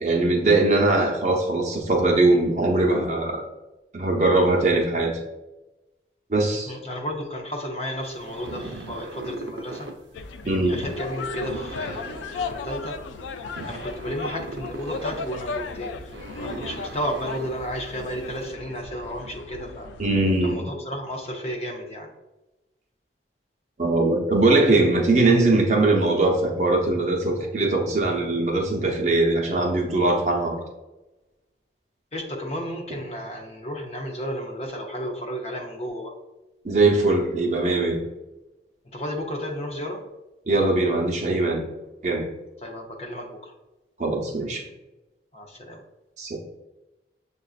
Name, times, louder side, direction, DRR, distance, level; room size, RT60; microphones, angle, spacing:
voice 1, 0.0-3.4 3.9-5.1 6.3-6.7 10.5-10.8 20.0-20.6 23.8-30.6 36.6-38.0 40.5-41.6 42.0-42.3 44.0-44.6 46.2-46.4, right 2 dB, 40° right, 0 dB, 0.7 m, -21 dB
voice 2, 6.7-9.9 10.4-13.0 13.6-19.9 20.4-22.1 32.1-36.1 38.9-40.0 42.6-43.5 45.3-45.8, equal, 35° left, 2 dB, 0.6 m, -33 dB
sound 1, 8.0-18.5, right 2 dB, 80° right, 0.6 m, -39 dB
sound 2, 10.1-20.5, left 4 dB, 90° left, 0.3 m, -36 dB
6.6 x 2.5 x 2.4 m, 1.0 s
head